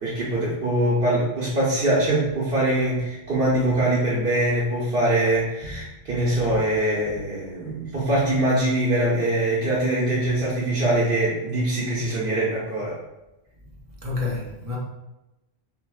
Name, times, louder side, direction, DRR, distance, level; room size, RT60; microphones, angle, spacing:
voice 1, 0.0-12.9, right 1 dB, 65° right, 1.2 m, -23 dB
voice 2, 6.1-6.6 14.0-14.8, left 3 dB, 40° right, 0.8 m, -31 dB
5.9 x 2.5 x 2.3 m
omnidirectional pair, 1.1 m